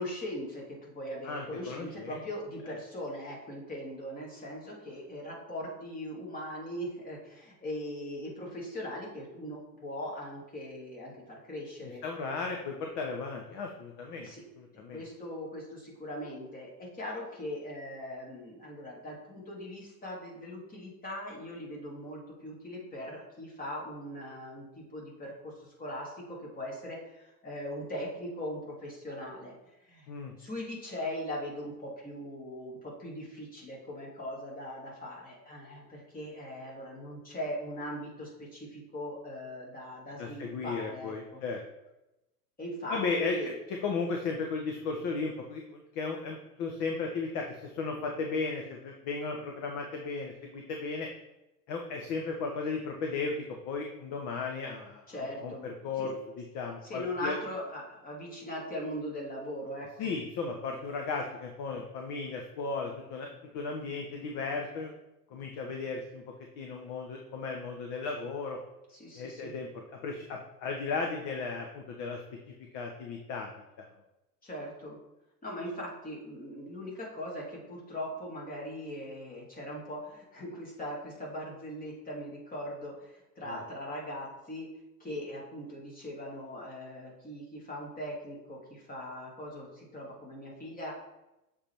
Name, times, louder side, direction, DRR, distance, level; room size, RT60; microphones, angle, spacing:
voice 1, 0.0-12.0 14.2-14.4 14.9-29.5 29.9-30.1 30.4-41.4 42.6-43.6 55.1-56.1 56.8-59.9 68.9-69.5 74.4-75.0 75.4-84.7 85.0-90.9, left 1 dB, 15° left, -3 dB, 2.1 m, -40 dB
voice 2, 1.2-2.2 12.0-14.3 14.6-15.0 30.1-30.3 40.2-41.6 42.9-43.4 43.8-51.1 51.7-55.0 55.4-57.4 60.0-63.3 63.5-64.9 65.3-66.2 66.6-68.6 69.1-72.2 72.7-73.5 83.5-83.6, left 4 dB, 35° left, 2 dB, 0.9 m, -35 dB
6.8 x 3.5 x 4.4 m, 0.94 s
figure-of-eight pair, 90°, 49 cm